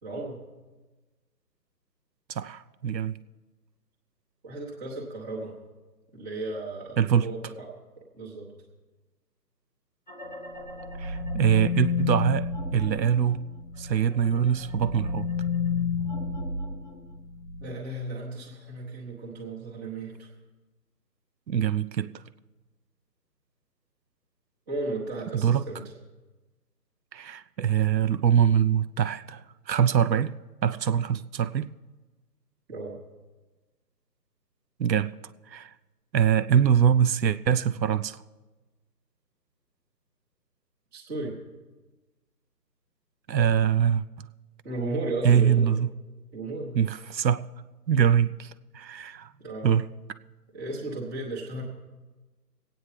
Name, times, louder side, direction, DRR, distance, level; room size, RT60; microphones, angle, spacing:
voice 1, 0.0-0.4 4.4-5.5 6.1-7.7 8.0-8.5 17.6-20.3 24.7-25.8 32.7-33.0 40.9-41.4 44.6-45.7 46.3-46.8 49.4-49.7 50.5-51.6, right 2 dB, 5° right, -6 dB, 1.0 m, -34 dB
voice 2, 2.3-3.2 7.0-7.3 11.0-12.5 12.7-13.4 13.8-15.3 21.5-22.1 25.4-25.6 27.1-30.3 30.6-31.7 34.8-35.1 35.5-35.7 36.1-38.2 43.3-44.0 45.2-45.9 46.7-47.4 47.9-49.3 49.6-49.9, right 8 dB, 85° right, 12 dB, 0.6 m, -23 dB
sound 1, 10.1-14.0 14.3-17.7, left 5 dB, 30° left, 0.5 m, -31 dB
24.0 x 8.9 x 3.2 m, 1.2 s
figure-of-eight pair, 150°, 50 cm